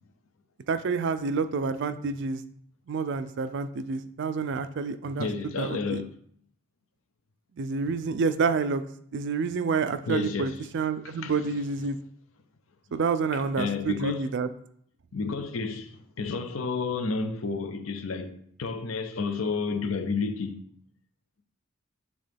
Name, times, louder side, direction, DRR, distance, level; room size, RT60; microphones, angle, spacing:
voice 1, 0.7-2.4 2.9-5.3 5.6-6.0 7.6-8.8 9.1-12.0 12.9-14.5, right 4 dB, 60° right, 0.4 m, -28 dB
voice 2, 5.2-6.1 10.1-10.6 11.0-11.6 13.3-14.3 15.1-20.6, left 4 dB, 80° left, 0.6 m, -31 dB
7.6 x 3.6 x 3.4 m
head